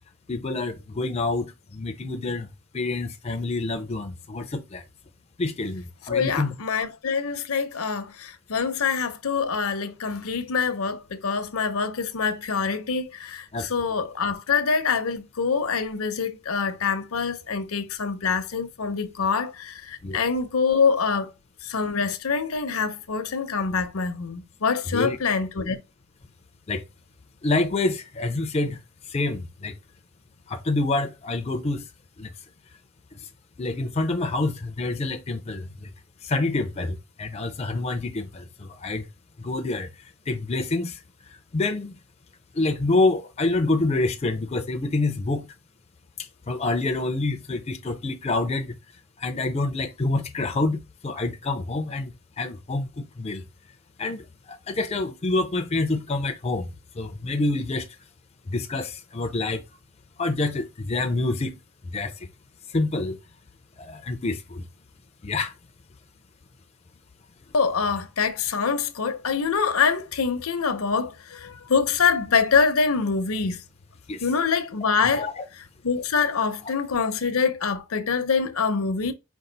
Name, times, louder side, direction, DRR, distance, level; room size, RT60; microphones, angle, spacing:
voice 1, 0.3-2.5 2.7-4.8 5.4-6.6 13.5-13.7 20.0-20.2 24.9-25.2 26.7-26.8 27.4-28.8 29.1-29.7 30.5-31.8 32.2-32.3 33.6-35.9 36.2-39.1 39.4-39.9 40.3-41.0 41.5-41.9 42.6-45.5 46.5-48.7 49.2-50.8 51.0-53.4 54.0-56.7 57.0-57.9 58.5-59.6 60.2-61.5 61.9-62.1 62.7-63.2 63.8-64.6 65.2-65.5 74.1-74.3 75.1-75.4, left 2 dB, 30° left, 0.4 m, -27 dB
voice 2, 6.1-21.3 21.6-25.8 67.5-73.6 74.2-75.3 75.8-79.1, left 5 dB, 75° left, 0.7 m, -25 dB
5.3 x 2.4 x 3.9 m
head